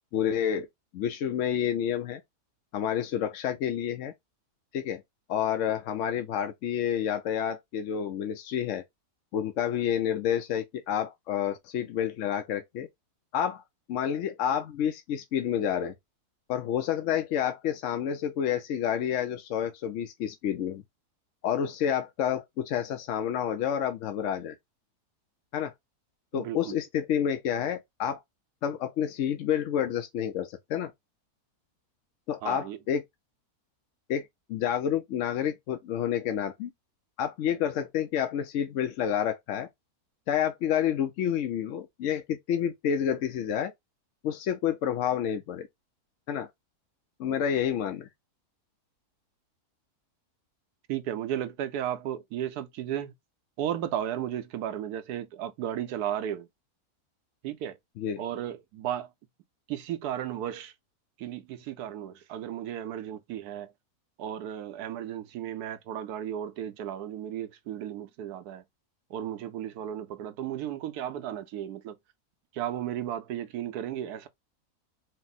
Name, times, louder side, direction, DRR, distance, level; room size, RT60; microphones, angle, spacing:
voice 1, 0.1-0.7 0.9-2.2 2.7-4.1 4.7-5.0 5.3-8.8 9.3-12.9 13.3-13.6 13.9-15.9 16.5-20.8 21.4-24.6 25.5-25.7 26.3-28.2 28.6-30.9 32.3-33.0 34.1-36.7 37.2-39.7 40.3-43.7 44.2-45.7 46.3-46.5 47.2-48.1 58.0-58.2, left 9 dB, 70° left, 0.8 m, -29 dB
voice 2, 26.3-26.7 32.4-32.8 50.9-53.1 53.6-56.5 57.4-57.8 58.2-59.1 59.7-60.7 61.2-63.7 64.2-68.6 69.1-72.0 72.5-74.3, right 10 dB, 80° right, 1.1 m, -34 dB
4.3 x 2.1 x 3.9 m
omnidirectional pair, 1.7 m